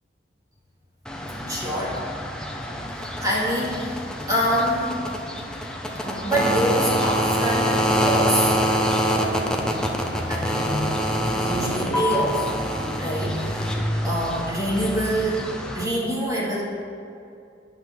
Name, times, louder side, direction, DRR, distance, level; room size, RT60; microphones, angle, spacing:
sound 1, 1.1-15.8, equal, 5° left, 0.8 m, -26 dB
voice 1, 1.5-2.0 3.0-4.0 4.3-4.9 6.0-8.5 9.1-9.4 10.3-10.9 11.3-12.4 13.0-13.8 14.0-15.5 15.7-16.6, right 1 dB, 20° right, -5 dB, 2.1 m, -25 dB
10.0 x 5.9 x 7.4 m, 2.5 s
head